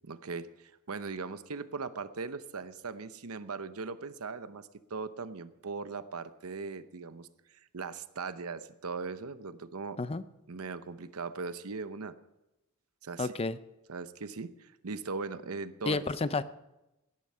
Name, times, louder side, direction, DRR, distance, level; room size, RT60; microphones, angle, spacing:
voice 1, 0.1-7.3 7.7-10.0 10.5-12.1 13.0-13.3 13.9-16.0, right 4 dB, 70° right, 12 dB, 0.8 m, -39 dB
voice 2, 13.2-13.6 15.8-16.4, left 3 dB, 25° left, 14 dB, 0.5 m, -30 dB
17.5 x 11.0 x 5.6 m, 0.95 s
head